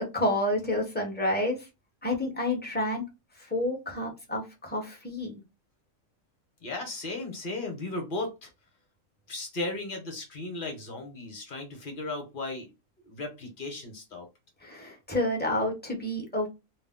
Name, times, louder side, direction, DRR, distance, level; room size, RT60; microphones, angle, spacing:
voice 1, 0.1-1.6 2.0-3.0 3.5-5.4 14.6-16.5, left 1 dB, 15° left, 0.4 m, -29 dB
voice 2, 6.6-8.5 9.3-12.7 13.0-14.3, left 2 dB, 45° left, 0.9 m, -36 dB
2.4 x 2.0 x 3.5 m
omnidirectional pair, 1.4 m